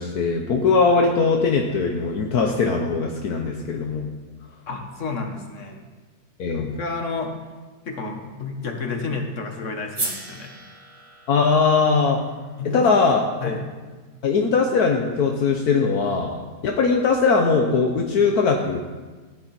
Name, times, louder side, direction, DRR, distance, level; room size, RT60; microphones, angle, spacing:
voice 1, 0.0-4.1 6.4-6.7 11.3-12.2 12.7-13.6 14.2-18.8, left 4 dB, 70° left, 2 dB, 1.5 m, -20 dB
voice 2, 4.7-5.8 6.5-7.3 7.9-10.5 12.6-12.9 13.4-13.8, left 3 dB, 50° left, 3 dB, 1.9 m, -31 dB
sound 1, 9.9-14.1, right 2 dB, 20° right, 1.3 m, -36 dB
15.0 x 11.0 x 4.4 m, 1.3 s
omnidirectional pair, 1.7 m